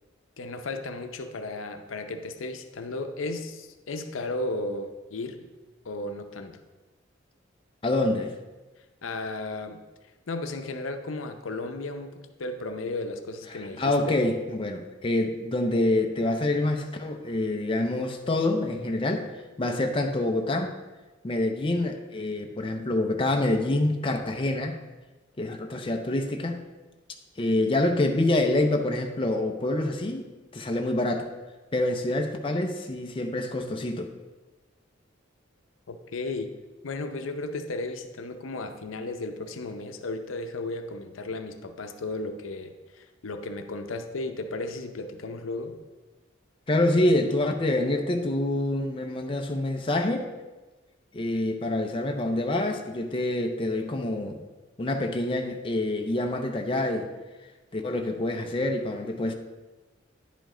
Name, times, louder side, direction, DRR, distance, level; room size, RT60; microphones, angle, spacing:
voice 1, 0.4-5.5 5.8-6.6 9.0-9.8 10.3-12.1 12.4-14.2 35.9-36.5 36.8-45.8, left 2 dB, 85° left, 7 dB, 0.6 m, -34 dB
voice 2, 7.8-8.3 13.5-19.3 19.6-20.7 21.2-24.8 25.4-26.6 27.4-31.3 31.7-34.1 46.7-50.3 51.1-54.4 54.8-57.1 57.7-59.3, left 1 dB, 25° left, 3 dB, 0.5 m, -26 dB
10.0 x 5.1 x 3.7 m, 1.2 s
head